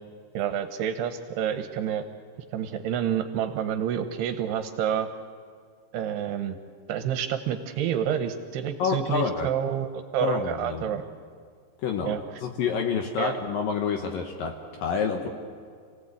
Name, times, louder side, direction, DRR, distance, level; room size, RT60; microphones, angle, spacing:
voice 1, 0.3-2.1 2.5-5.1 5.9-6.6 6.9-11.0 12.1-12.2 13.2-13.4, right 9 dB, 75° right, 8 dB, 2.7 m, -28 dB
voice 2, 8.8-9.5 10.2-11.0 11.8-15.3, left 6 dB, 70° left, 4 dB, 2.4 m, -28 dB
27.0 x 17.5 x 8.4 m, 2.1 s
omnidirectional pair, 5.2 m